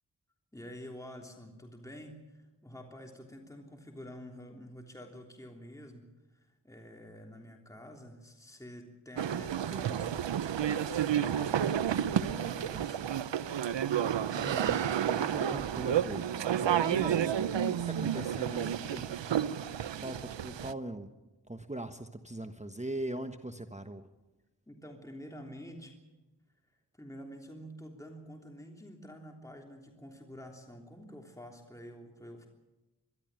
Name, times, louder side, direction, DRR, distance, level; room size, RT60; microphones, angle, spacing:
voice 1, 0.5-6.0 6.3-13.1 24.7-26.0 26.9-32.5, equal, 5° left, 2 dB, 3.3 m, -48 dB
sound 1, 9.2-20.7, right 9 dB, 80° right, 0.8 m, -31 dB
voice 2, 14.3-16.3 16.6-19.2 20.0-21.1 21.5-24.1, right 1 dB, 15° right, 7 dB, 1.3 m, -40 dB
23.0 x 13.5 x 9.1 m, 1.1 s
cardioid pair, 55°, 43 cm